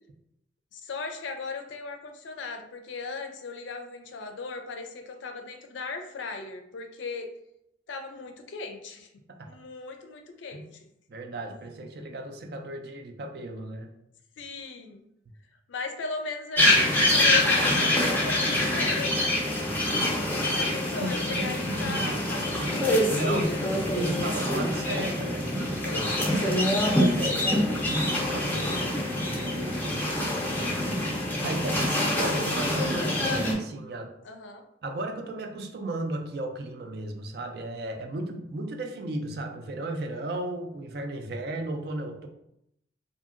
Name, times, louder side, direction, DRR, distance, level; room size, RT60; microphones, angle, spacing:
voice 1, 0.7-7.3 7.9-9.1 9.4-10.9 14.4-15.0 15.7-19.4 20.3-23.7 25.8-26.3 34.2-34.6, left 4 dB, 80° left, 5 dB, 0.4 m, -38 dB
voice 2, 11.1-13.9 21.0-22.0 23.1-23.6 23.9-26.7 26.9-28.9 29.3-30.1 31.3-34.2 34.8-42.3, right 1 dB, 55° right, 4 dB, 0.4 m, -35 dB
sound 1, 16.6-33.5, left 1 dB, 10° left, 0.4 m, -25 dB
2.7 x 2.5 x 2.4 m, 0.79 s
head